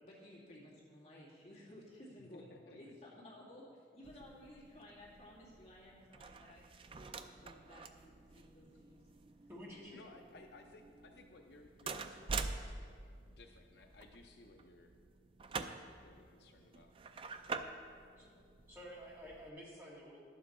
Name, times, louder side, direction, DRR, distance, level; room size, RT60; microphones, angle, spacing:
voice 1, 0.0-6.7 6.9-9.0, left 1 dB, 40° left, -6 dB, 2.3 m, -56 dB
voice 2, 2.2-2.9 4.3-4.4 6.7-6.8 9.9-12.8 13.3-14.9 16.0-16.9, left 2 dB, 65° left, 4 dB, 0.5 m, -59 dB
sound 1, 4.0-19.5, right 4 dB, 30° right, 0.4 m, -47 dB
voice 3, 9.5-10.0 18.2-18.4 18.7-20.2, equal, 15° right, -5 dB, 1.8 m, -51 dB
11.0 x 7.4 x 4.2 m, 2.3 s
head